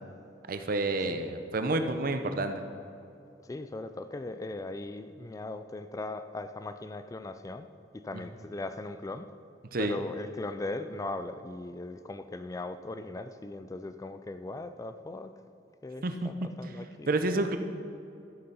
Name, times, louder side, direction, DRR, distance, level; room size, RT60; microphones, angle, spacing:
voice 1, 0.5-2.6 9.7-10.0 16.0-16.3 17.1-17.6, right 2 dB, 55° right, 7 dB, 0.7 m, -29 dB
voice 2, 3.4-7.7 7.9-9.3 9.8-15.3 15.8-17.1, left 2 dB, 20° left, 10 dB, 0.3 m, -39 dB
13.5 x 6.8 x 5.5 m, 2.6 s
head